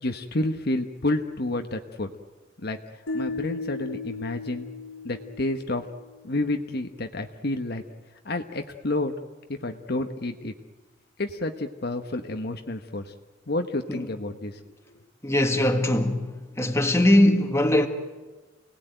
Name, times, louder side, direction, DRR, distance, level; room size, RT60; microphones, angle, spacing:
voice 1, 0.0-2.1 2.6-2.8 3.1-4.7 5.0-5.8 6.2-7.8 8.2-9.1 9.5-10.5 11.2-13.1 13.5-14.6, left 2 dB, 55° left, 1.2 m, -29 dB
sound 1, 3.1-6.2, left 4 dB, 90° left, 1.3 m, -36 dB
voice 2, 15.2-17.9, left 1 dB, 15° left, 2.0 m, -21 dB
28.5 x 19.0 x 9.2 m
head